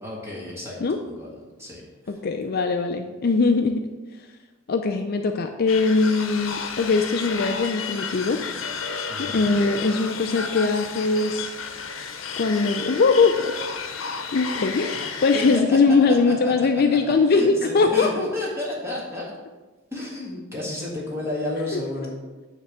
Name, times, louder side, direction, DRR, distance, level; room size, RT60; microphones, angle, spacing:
voice 1, 0.0-1.3 1.6-2.1 9.1-9.5 15.3-15.6 16.1-17.5 17.9-19.3 19.9-22.1, left 2 dB, 15° right, -5 dB, 1.8 m, -32 dB
voice 2, 2.1-3.8 4.7-8.4 9.2-11.5 12.4-13.6 14.3-18.1 21.7-21.8, left 4 dB, 50° left, 5 dB, 0.5 m, -21 dB
sound 1, 5.7-15.6, left 5 dB, 80° left, 0.8 m, -32 dB
9.3 x 3.4 x 6.7 m, 1.2 s
head